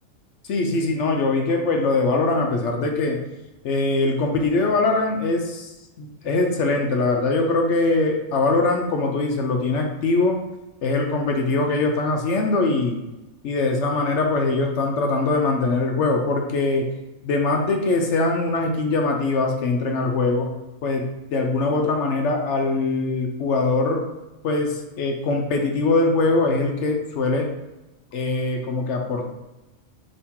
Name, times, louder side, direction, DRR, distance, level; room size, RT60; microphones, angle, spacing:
voice 1, 0.4-3.2 3.6-5.7 6.0-10.4 10.8-13.0 13.4-16.9 17.2-20.5 20.8-24.0 24.4-27.5 28.1-29.2, left 3 dB, 70° left, 2 dB, 0.9 m, -22 dB
4.3 x 3.0 x 3.6 m, 1.0 s
omnidirectional pair, 1.3 m